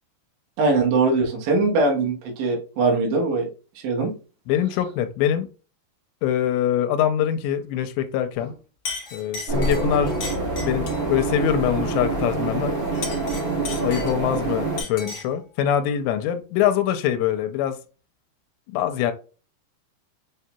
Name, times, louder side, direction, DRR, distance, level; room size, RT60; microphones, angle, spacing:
voice 1, 0.6-3.5 3.8-4.1, right 3 dB, 75° right, 3.5 m, -21 dB
voice 2, 4.5-5.5 6.2-8.5 9.1-10.2 10.6-12.8 13.8-17.8 18.7-19.1, left 10 dB, 85° left, 2.7 m, -23 dB
Chink clink, 8.3-8.5 8.8-11.1 12.8-14.4 14.8-15.4, left 4 dB, 55° left, 1.5 m, -35 dB
sound 1, 9.5-14.8, right 3 dB, 60° right, 1.2 m, -26 dB
7.6 x 2.8 x 2.2 m
omnidirectional pair, 5.0 m